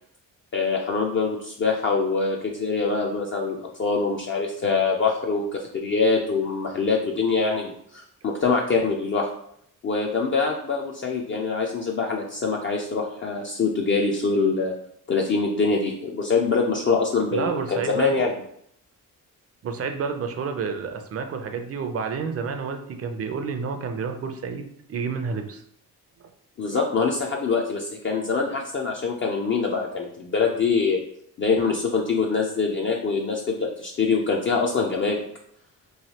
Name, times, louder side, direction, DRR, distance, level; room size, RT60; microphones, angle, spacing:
voice 1, 0.5-9.3 9.8-14.7 15.1-18.3 26.6-31.0 31.4-35.2, left 4 dB, 35° left, 0 dB, 0.4 m, -24 dB
voice 2, 17.3-18.1 19.6-25.6 26.2-26.3, right 5 dB, 40° right, 6 dB, 0.5 m, -30 dB
3.1 x 2.6 x 2.8 m, 0.68 s
cardioid pair, 95°, 35 cm